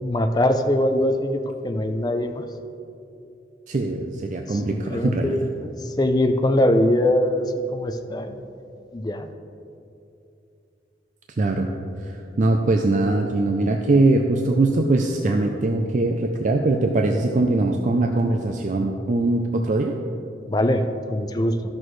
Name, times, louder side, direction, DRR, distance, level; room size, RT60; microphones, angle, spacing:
voice 1, 0.0-2.4 4.5-8.5 8.9-9.3 20.5-21.6, left 1 dB, 20° left, 7 dB, 0.4 m, -22 dB
voice 2, 3.7-5.4 11.4-11.7 12.1-19.9, right 2 dB, 45° right, 3 dB, 0.4 m, -21 dB
13.0 x 6.2 x 3.1 m, 2.6 s
head